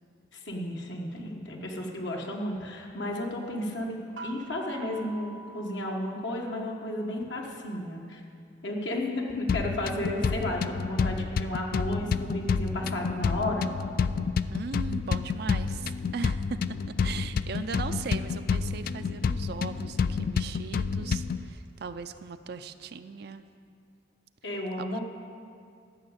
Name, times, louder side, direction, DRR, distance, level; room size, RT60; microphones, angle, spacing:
voice 1, 0.3-4.0 4.2-8.2 8.6-13.7 24.4-25.0, left 1 dB, 75° left, 0 dB, 1.5 m, -33 dB
sound 1, 4.2-6.9, right 4 dB, 85° right, 0.9 m, -46 dB
sound 2, 9.5-21.5, left 5 dB, 50° left, 0.3 m, -29 dB
voice 2, 14.5-16.6 17.0-23.4 24.8-25.0, right 5 dB, 60° right, 9 dB, 0.4 m, -38 dB
14.0 x 6.4 x 8.8 m, 2.4 s
head